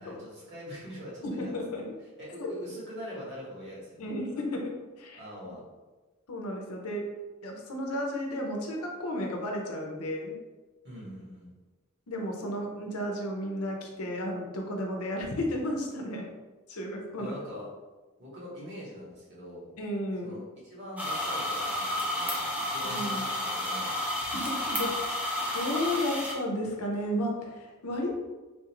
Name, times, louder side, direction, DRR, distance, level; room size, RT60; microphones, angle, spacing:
voice 1, 0.0-1.8 2.2-4.1 5.1-5.7 10.8-11.5 17.2-17.7 18.2-19.7 20.2-24.0, equal, 55° right, -6 dB, 1.4 m, -43 dB
voice 2, 1.2-1.8 4.0-5.2 6.3-7.1 7.4-10.4 12.1-16.3 16.7-17.3 19.8-20.4 22.8-23.3 24.3-28.2, left 1 dB, 75° left, 1 dB, 0.7 m, -33 dB
sound 1, 21.0-26.3, left 1 dB, 5° right, 0.5 m, -31 dB
3.7 x 2.5 x 2.9 m, 1.3 s
head